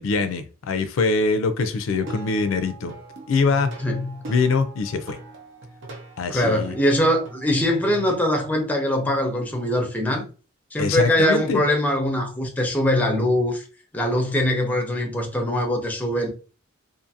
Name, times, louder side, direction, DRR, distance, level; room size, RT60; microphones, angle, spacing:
voice 1, 0.0-2.9 3.3-3.7 4.3-5.2 6.2-6.7 10.8-11.6, left 4 dB, 85° left, 0.4 m, -23 dB
Plucked string instrument, 1.9-8.3, right 2 dB, 65° right, 0.7 m, -40 dB
voice 2, 3.8-4.2 6.3-10.3 10.7-13.6 13.9-16.3, left 1 dB, 10° left, 0.6 m, -22 dB
2.6 x 2.5 x 2.6 m
head